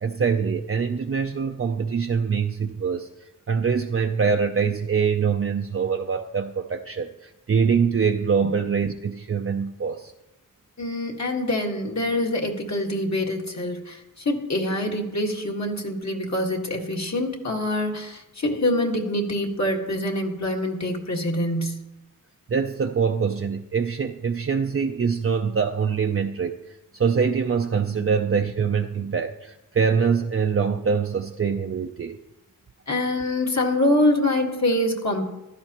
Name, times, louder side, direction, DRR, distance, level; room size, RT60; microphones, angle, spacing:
voice 1, 0.0-10.1 22.5-32.2, right 6 dB, 40° right, 4 dB, 0.5 m, -24 dB
voice 2, 10.8-21.8 32.9-35.2, left 1 dB, 50° left, 0 dB, 1.7 m, -25 dB
15.5 x 12.5 x 2.9 m, 0.98 s
wide cardioid pair, 95°, 35 cm